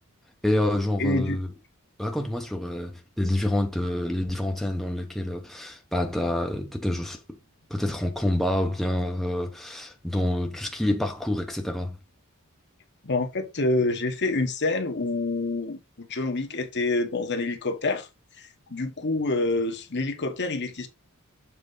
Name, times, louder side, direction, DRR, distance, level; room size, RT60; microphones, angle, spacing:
voice 1, 0.4-1.5 2.0-7.4 7.7-12.0, left 1 dB, ahead, 0.9 m, -27 dB
voice 2, 1.0-1.4 13.0-18.1 18.4-20.9, left 2 dB, 50° left, 1.3 m, -27 dB
7.4 x 4.4 x 3.9 m
head